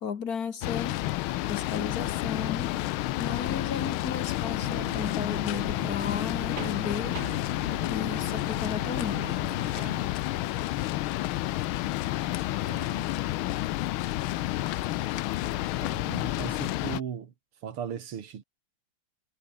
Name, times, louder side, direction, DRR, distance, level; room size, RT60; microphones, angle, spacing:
voice 1, 0.0-1.0 1.5-2.7 3.2-7.5 7.8-9.3, left 7 dB, 50° left, 1.6 m, -34 dB
sound 1, 0.6-17.0, left 16 dB, 80° left, 1.4 m, -30 dB
sound 2, 4.6-10.1, right 5 dB, 50° right, 2.7 m, -42 dB
voice 2, 12.7-13.1 15.4-17.3 17.6-18.4, right 8 dB, 85° right, 2.8 m, -38 dB
omnidirectional pair, 2.4 m